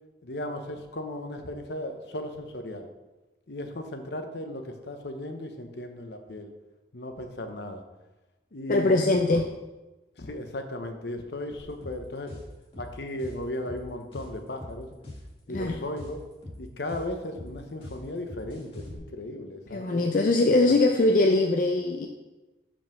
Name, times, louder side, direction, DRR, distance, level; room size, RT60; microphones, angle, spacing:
voice 1, 0.2-2.9 3.5-6.5 6.9-7.8 8.5-9.4 10.2-12.4 12.8-14.9 15.5-16.2 16.6-20.1 20.5-20.8, left 1 dB, 65° left, 6 dB, 0.8 m, -36 dB
voice 2, 8.7-9.5 15.5-15.8 19.7-22.1, left 2 dB, 45° left, 3 dB, 0.4 m, -22 dB
sound 1, 11.6-19.0, left 1 dB, 30° left, 1.9 m, -42 dB
5.4 x 5.1 x 6.1 m, 1.1 s
head